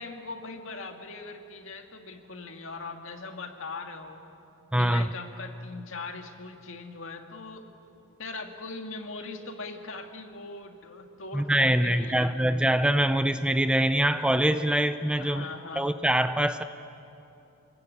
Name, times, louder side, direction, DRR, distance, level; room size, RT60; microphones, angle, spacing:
voice 1, 0.0-4.2 4.8-7.6 8.2-12.4 15.2-15.8, left 3 dB, 65° left, 4 dB, 2.2 m, -40 dB
voice 2, 4.7-5.1 11.3-15.5 15.8-16.6, right 1 dB, 5° right, 10 dB, 0.5 m, -24 dB
28.0 x 21.5 x 8.6 m, 2.8 s
head